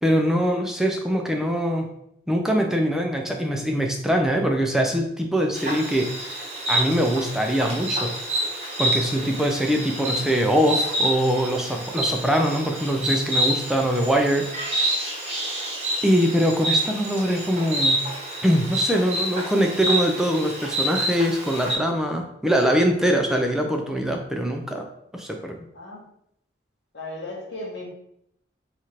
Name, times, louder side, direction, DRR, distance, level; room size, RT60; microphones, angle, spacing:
voice 1, 0.0-1.9 2.3-6.4 6.7-8.1 8.8-14.7 16.0-18.1 18.4-24.9 25.1-25.6, equal, 5° right, 2 dB, 0.3 m, -23 dB
Insect, 5.5-21.8, right 1 dB, 35° right, 0.9 m, -28 dB
voice 2, 25.7-26.1 26.9-27.9, left 2 dB, 60° left, -4 dB, 0.9 m, -37 dB
3.0 x 2.5 x 4.2 m, 0.76 s
head